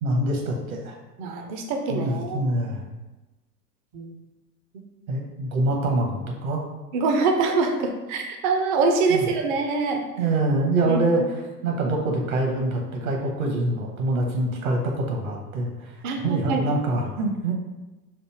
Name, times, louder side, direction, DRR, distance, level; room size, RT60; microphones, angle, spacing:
voice 1, 0.0-0.9 1.9-2.8 5.1-6.6 9.1-9.3 10.2-11.2 11.6-17.5, right 2 dB, 55° right, 1 dB, 1.1 m, -25 dB
voice 2, 1.2-2.4 3.9-4.1 6.9-10.1 10.8-11.0 16.0-16.7, right 4 dB, 30° right, 3 dB, 0.5 m, -24 dB
3.4 x 2.6 x 4.5 m, 1.1 s
figure-of-eight pair, 90°, 49 cm